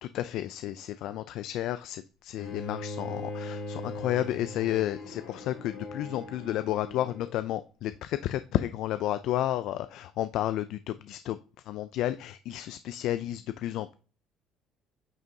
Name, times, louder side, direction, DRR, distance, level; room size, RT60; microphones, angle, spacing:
voice 1, 0.0-11.4 11.7-13.9, left 13 dB, 55° left, 0.3 m, -32 dB
Bowed string instrument, 2.4-7.4, left 2 dB, 75° left, 3.3 m, -40 dB
9.0 x 6.1 x 2.8 m
cardioid pair, 175°, 0 cm